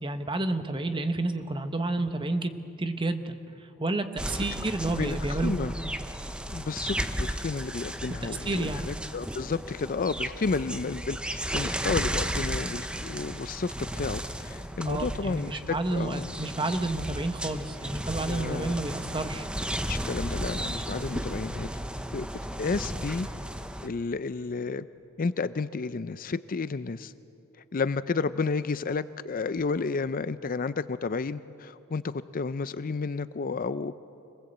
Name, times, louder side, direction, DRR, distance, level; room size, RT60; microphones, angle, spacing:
voice 1, 0.0-2.5 2.8-5.5 8.4-8.8 14.8-19.5, right 2 dB, 25° right, 8 dB, 1.1 m, -30 dB
sound 1, 4.2-23.9, right 1 dB, 5° right, 0.8 m, -34 dB
voice 2, 4.9-5.7 6.5-16.3 18.3-18.8 19.9-21.7 22.1-22.3 22.6-23.3 23.8-24.9 25.2-27.1 27.7-33.9, left 4 dB, 40° left, 14 dB, 0.5 m, -31 dB
26.0 x 19.5 x 8.0 m, 2.7 s
head